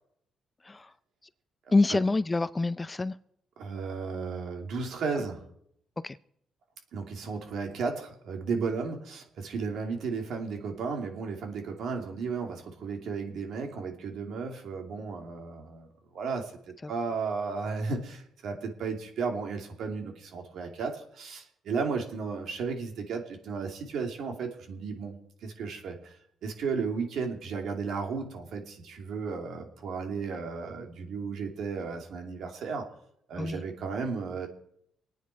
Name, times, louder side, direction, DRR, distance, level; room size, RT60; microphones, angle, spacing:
voice 1, 1.7-3.2 6.0-6.2 16.8-16.9 33.4-33.6, left 3 dB, 20° left, 15 dB, 0.5 m, -26 dB
voice 2, 3.6-5.4 6.9-15.9 16.1-25.2 25.4-26.1 26.4-32.8 33.3-34.5, right 5 dB, 70° right, 3 dB, 2.7 m, -34 dB
25.0 x 9.4 x 4.7 m, 0.72 s
cardioid pair, 90°, 0 cm